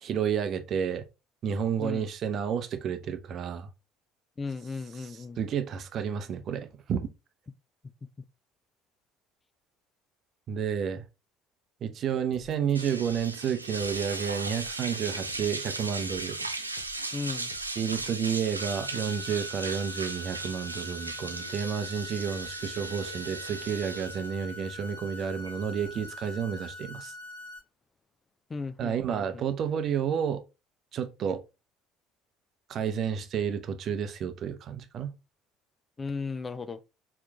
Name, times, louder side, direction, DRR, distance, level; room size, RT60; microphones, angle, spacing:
voice 1, 0.0-1.0 1.4-3.7 5.0-7.1 10.5-11.0 11.8-16.4 17.8-27.1 28.8-30.4 30.9-31.4 32.7-35.1, right 7 dB, 45° right, 0.7 m, -31 dB
voice 2, 1.8-2.1 4.4-5.4 17.1-17.5 28.5-29.4 36.0-36.8, left 4 dB, 25° left, 0.4 m, -36 dB
sound 1, 12.3-18.2, left 5 dB, 65° left, 0.9 m, -52 dB
sound 2, 12.7-26.3, right 2 dB, 90° right, 0.3 m, -37 dB
sound 3, 18.6-27.6, left 2 dB, 85° left, 2.0 m, -44 dB
4.6 x 3.5 x 2.2 m
figure-of-eight pair, 60°, 0 cm